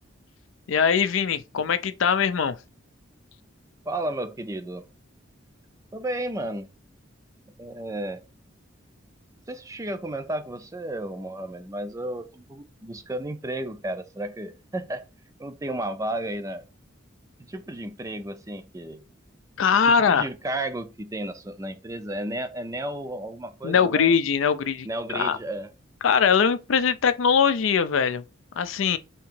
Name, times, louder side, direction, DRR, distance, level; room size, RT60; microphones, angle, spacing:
voice 1, 0.7-2.6 19.6-20.2 23.6-25.4 26.0-28.2 28.6-29.0, left 6 dB, 80° left, 0.4 m, -21 dB
voice 2, 3.9-4.8 5.9-6.7 7.5-8.2 9.5-15.0 15.4-16.6 17.5-19.1 19.9-24.1 24.8-25.7, right 1 dB, 15° right, 0.4 m, -33 dB
3.6 x 2.9 x 4.3 m
head